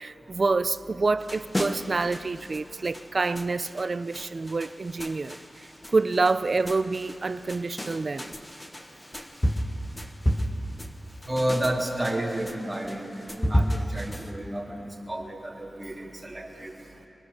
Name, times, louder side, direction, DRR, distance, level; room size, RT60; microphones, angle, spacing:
voice 1, 0.0-8.3, right 3 dB, 40° right, 13 dB, 0.5 m, -27 dB
sound 1, 1.2-14.3, equal, 10° left, 1.1 m, -32 dB
voice 2, 11.3-13.0 13.3-16.7, right 1 dB, 15° right, -2 dB, 2.3 m, -31 dB
24.0 x 21.5 x 6.6 m, 2.9 s
wide cardioid pair, 150°, 0 cm